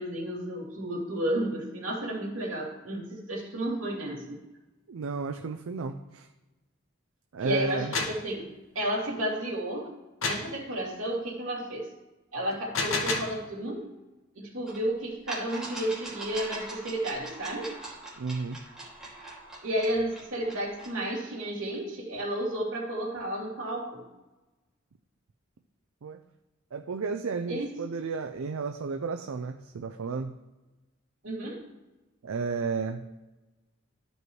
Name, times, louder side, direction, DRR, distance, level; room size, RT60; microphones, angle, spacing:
voice 1, 0.0-4.4 7.4-8.4 8.7-9.9 10.2-11.9 12.3-13.9 14.3-17.7 19.6-24.0 27.5-27.7 31.2-31.6, right 1 dB, 75° right, -3 dB, 2.8 m, -32 dB
voice 2, 4.9-6.3 7.3-7.9 18.2-18.6 26.0-26.2 26.7-30.3 32.2-33.0, right 4 dB, 90° right, 6 dB, 0.5 m, -33 dB
sound 1, 7.7-8.2 10.2-10.5 12.5-13.4, left 3 dB, 70° left, 1.3 m, -30 dB
sound 2, 14.7-14.8 15.3-21.0, right 2 dB, 5° right, 2.3 m, -42 dB
13.0 x 5.3 x 3.1 m, 1.1 s
head